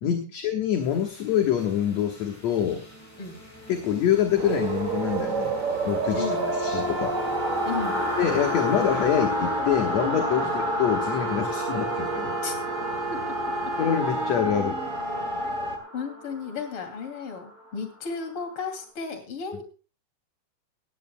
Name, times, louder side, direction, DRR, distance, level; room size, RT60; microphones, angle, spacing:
voice 1, 0.0-2.9 3.7-5.5 5.8-6.3 6.6-7.2 8.2-12.3 13.8-14.7, left 9 dB, 60° left, 4 dB, 2.4 m, -25 dB
crg horrorvoice, 0.9-18.7, equal, 5° left, 6.4 m, -36 dB
sound 1, 4.4-15.8, right 2 dB, 30° right, 2.0 m, -30 dB
voice 2, 6.1-6.5 7.6-8.0 10.4-10.5 12.4-12.5 13.1-13.7 15.4-15.5 15.9-19.6, left 5 dB, 45° left, 6 dB, 3.2 m, -34 dB
sound 2, 6.2-15.4, right 1 dB, 85° right, 5.9 m, -36 dB
19.0 x 15.0 x 2.2 m, 0.34 s
omnidirectional pair, 3.7 m